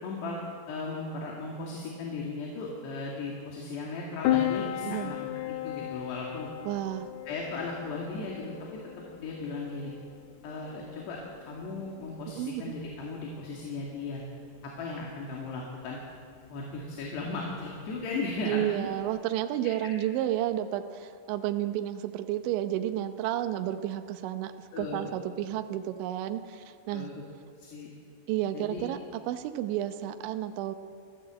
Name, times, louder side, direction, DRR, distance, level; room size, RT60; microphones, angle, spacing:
voice 1, 0.0-6.5 7.3-8.7 9.2-9.9 10.4-14.2 14.6-16.0 16.5-18.9 24.7-25.1 26.9-27.2 27.6-27.9 28.5-28.9, left 3 dB, 65° left, -2 dB, 4.3 m, -37 dB
Piano, 4.2-19.2, left 13 dB, 85° left, 2.3 m, -37 dB
voice 2, 6.7-7.1 12.3-12.8 18.5-27.1 28.3-30.8, right 12 dB, 80° right, 8 dB, 3.1 m, -31 dB
27.5 x 15.0 x 7.7 m, 2.3 s
omnidirectional pair, 5.5 m